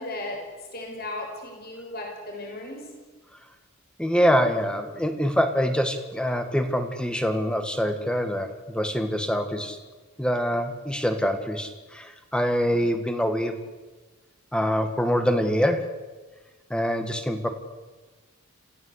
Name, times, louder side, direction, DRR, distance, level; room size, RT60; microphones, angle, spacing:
voice 1, 0.0-2.9, left 2 dB, 45° left, 1 dB, 6.1 m, -36 dB
voice 2, 4.0-9.8 10.2-13.6 14.5-15.9 16.7-17.5, equal, 5° left, 8 dB, 1.7 m, -25 dB
27.5 x 16.0 x 8.3 m, 1.3 s
head